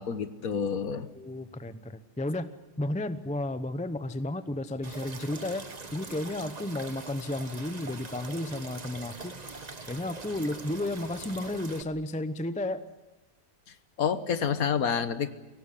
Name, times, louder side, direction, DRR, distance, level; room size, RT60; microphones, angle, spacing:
voice 1, 0.0-1.1 13.7-15.3, left 7 dB, 60° left, 12 dB, 1.5 m, -29 dB
voice 2, 1.2-2.5 2.8-9.4 9.8-12.8, left 1 dB, 10° left, 12 dB, 0.5 m, -33 dB
sound 1, 4.8-11.8, right 3 dB, 25° right, 1.3 m, -43 dB
23.5 x 18.0 x 9.9 m, 1.1 s
omnidirectional pair, 1.7 m